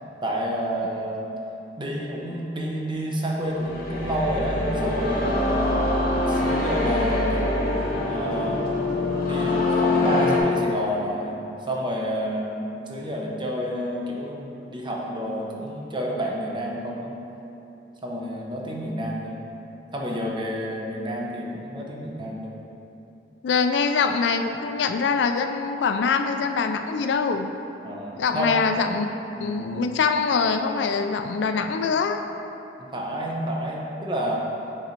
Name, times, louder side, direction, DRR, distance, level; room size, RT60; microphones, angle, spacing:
voice 1, 0.2-1.2 1.8-5.9 6.3-7.4 8.1-8.6 9.3-17.2 18.0-19.5 19.9-22.6 27.8-28.6 29.3-29.6 32.8-34.5, equal, 25° right, -2 dB, 0.7 m, -29 dB
sound 1, 3.4-10.4, left 2 dB, 50° left, 1.0 m, -24 dB
voice 2, 23.4-27.5 28.2-29.1 29.4-32.2, left 5 dB, 80° left, 7 dB, 0.4 m, -23 dB
6.7 x 4.0 x 4.4 m, 2.9 s
head